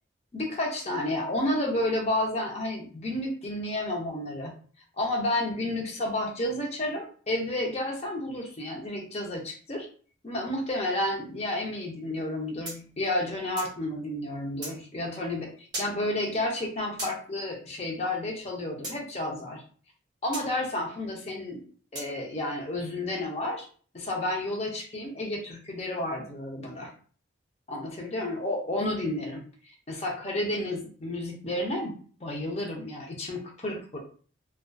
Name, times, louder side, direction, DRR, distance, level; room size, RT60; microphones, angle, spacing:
voice 1, 0.3-4.5 5.0-9.9 10.2-19.6 20.2-21.6 21.9-23.7 23.9-26.9 27.7-31.9 32.2-34.0, left 1 dB, 35° left, 0 dB, 0.5 m, -31 dB
sound 1, 12.6-13.8 14.6-14.8 15.7-15.9 17.0-17.2 18.8-19.0 20.3-20.5 21.9-22.1, right 1 dB, 20° right, 1.1 m, -37 dB
2.5 x 2.2 x 2.2 m, 0.43 s
head